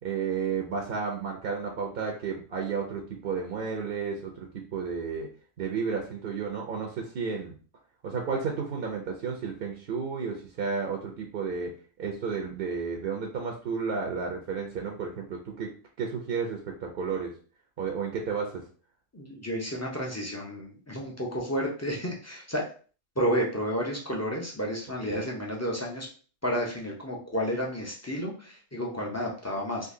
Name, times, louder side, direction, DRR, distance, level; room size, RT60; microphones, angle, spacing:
voice 1, 0.0-5.3 5.6-7.5 8.0-11.7 12.0-15.7 16.0-17.3 17.8-18.6 25.0-25.2, right 5 dB, 55° right, 1 dB, 0.7 m, -32 dB
voice 2, 19.1-22.7 23.2-26.1 26.4-29.9, equal, 20° left, -2 dB, 0.4 m, -31 dB
3.7 x 2.8 x 2.6 m, 0.40 s
omnidirectional pair, 1.3 m